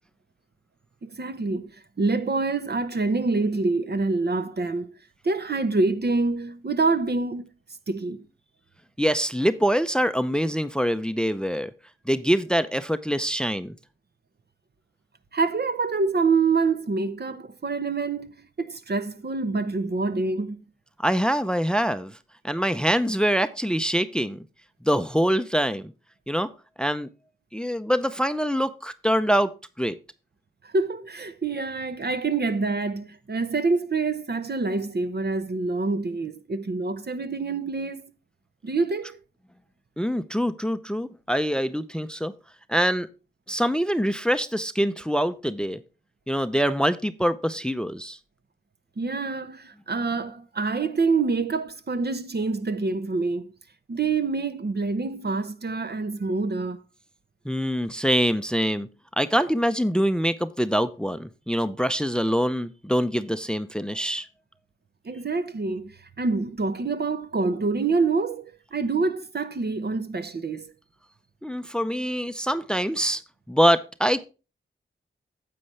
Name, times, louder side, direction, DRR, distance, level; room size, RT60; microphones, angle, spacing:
voice 1, 1.0-1.7 2.0-4.9 5.2-7.5 7.9-8.2 15.3-20.6 30.6-38.0 38.6-39.2 49.0-53.5 53.9-56.8 65.0-68.4 68.7-70.7, right 3 dB, 55° right, 0.9 m, -26 dB
voice 2, 9.0-11.7 12.1-13.7 21.0-22.1 22.4-24.4 24.8-25.9 26.3-26.5 26.8-27.1 27.5-29.5 29.8-30.0 40.0-42.3 42.7-43.1 43.5-45.8 46.3-48.2 57.5-58.9 59.2-64.3 71.4-73.2 73.5-74.3, equal, 5° left, 0.6 m, -24 dB
9.7 x 7.7 x 3.2 m
cardioid pair, 45°, 20 cm